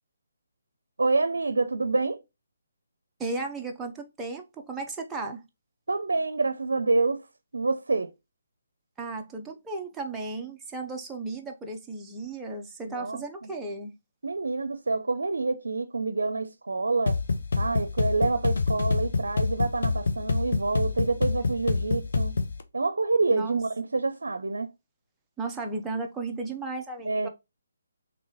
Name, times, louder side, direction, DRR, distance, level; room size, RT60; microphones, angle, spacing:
voice 1, 1.0-2.2 5.9-7.3 7.5-8.1 12.9-13.5 14.2-17.2 17.6-22.3 22.7-24.7 27.1-27.3, right 3 dB, 85° right, 0.5 m, -27 dB
voice 2, 3.2-5.4 9.0-13.9 23.3-23.6 25.4-27.3, right 3 dB, 10° right, 0.6 m, -35 dB
sound 1, 17.1-22.6, left 4 dB, 65° left, 0.6 m, -27 dB
3.2 x 3.0 x 3.7 m
hypercardioid pair, 160°, 0 cm